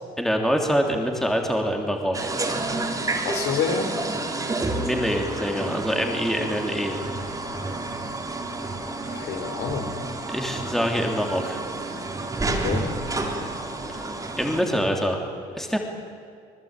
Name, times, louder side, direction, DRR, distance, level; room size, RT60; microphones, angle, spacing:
voice 1, 0.2-2.3 4.7-7.0 10.3-11.6 13.9-14.1 14.4-15.2 15.6-15.8, equal, ahead, 2 dB, 3.0 m, -25 dB
sound 1, 2.1-14.6, right 2 dB, 20° right, 3.6 m, -30 dB
voice 2, 3.2-3.9 9.1-9.9 12.5-12.9, left 6 dB, 75° left, 5 dB, 3.8 m, -28 dB
26.0 x 20.0 x 9.0 m, 2.3 s
cardioid pair, 110°, 17 cm